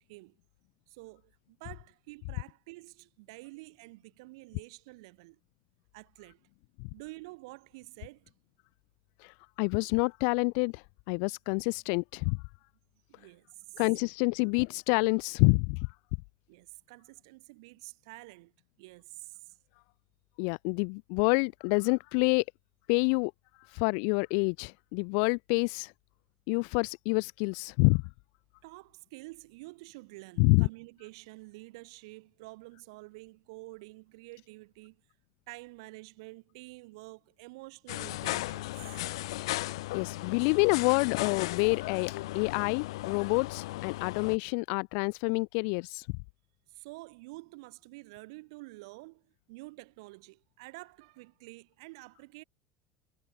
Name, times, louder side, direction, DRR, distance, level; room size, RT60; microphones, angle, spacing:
voice 1, 0.9-5.4 5.9-6.4 6.9-8.3 13.1-13.8 16.5-18.5 18.8-19.6 28.6-35.0 35.5-39.1 46.7-52.4, right 24 dB, 80° right, 5.0 m, -49 dB
voice 2, 9.2-12.4 13.8-15.9 20.4-22.4 22.9-23.3 23.7-25.9 26.5-28.0 30.4-30.7 39.9-46.2, left 40 dB or more, 70° left, 1.5 m, -27 dB
sound 1, 37.9-44.4, left 18 dB, 90° left, 0.7 m, -36 dB
supercardioid pair, 125°, 3 cm